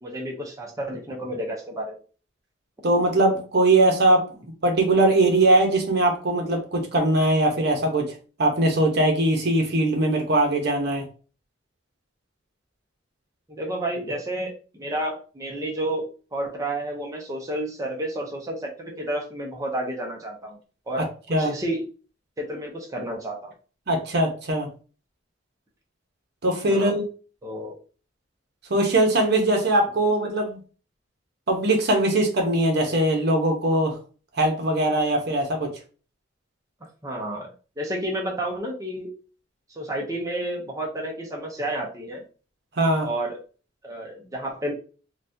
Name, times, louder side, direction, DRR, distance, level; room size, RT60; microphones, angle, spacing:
voice 1, 0.0-2.0 13.5-14.5 14.8-20.6 20.9-21.8 22.4-23.5 26.7-27.0 27.4-27.8 37.0-37.5 37.8-39.1 39.7-42.2 43.0-43.4 43.8-44.7, right 1 dB, 20° right, -1 dB, 0.6 m, -31 dB
voice 2, 2.8-4.2 4.6-8.1 8.4-11.1 21.0-21.5 23.9-24.7 26.4-27.0 28.7-30.6 31.5-34.0 34.4-35.7 42.8-43.1, right 1 dB, 60° right, 3 dB, 0.8 m, -21 dB
3.9 x 2.2 x 2.6 m, 0.37 s
head